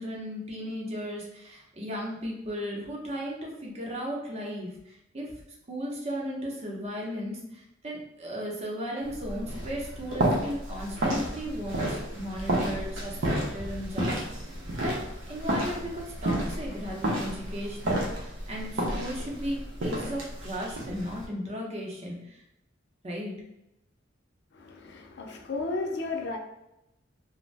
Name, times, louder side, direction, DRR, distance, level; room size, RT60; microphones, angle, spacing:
voice 1, 0.0-5.3 5.7-14.1 14.8-14.9 15.3-22.4 23.0-23.4, equal, 35° right, -2 dB, 0.7 m, -36 dB
sound 1, 9.0-21.3, right 1 dB, 70° right, 0.7 m, -31 dB
voice 2, 24.5-26.4, left 3 dB, 60° left, 3 dB, 0.5 m, -33 dB
2.5 x 2.1 x 3.2 m, 0.85 s
head